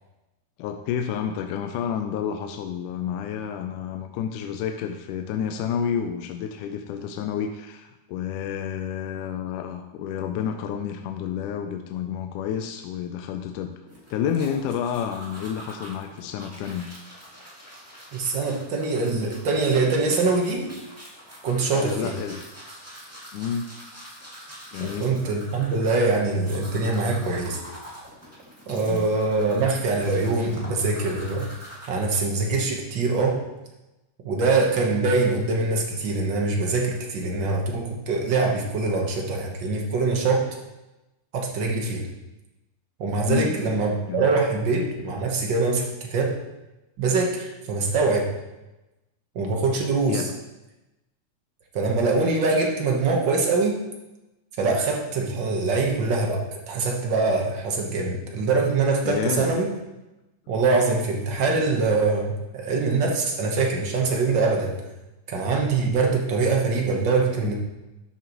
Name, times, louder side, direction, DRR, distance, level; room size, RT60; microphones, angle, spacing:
voice 1, 0.6-13.7 14.1-16.9 21.7-22.5 23.3-23.7 24.7-25.1 28.9-29.1 43.3-43.8 44.1-44.3 50.1-50.3 59.0-59.5, left 8 dB, 85° left, 6 dB, 2.1 m, -30 dB
sound 1, 13.9-31.9, equal, 5° right, 1.2 m, -45 dB
voice 2, 18.1-20.7 21.4-22.1 24.8-27.6 28.7-31.5 31.9-33.4 34.2-40.5 41.3-42.1 43.0-46.4 47.0-48.3 49.3-50.2 51.7-53.8 54.6-59.7 60.5-64.7 65.3-67.5, right 3 dB, 65° right, 0 dB, 1.2 m, -23 dB
12.0 x 7.3 x 3.0 m, 1.0 s
omnidirectional pair, 3.6 m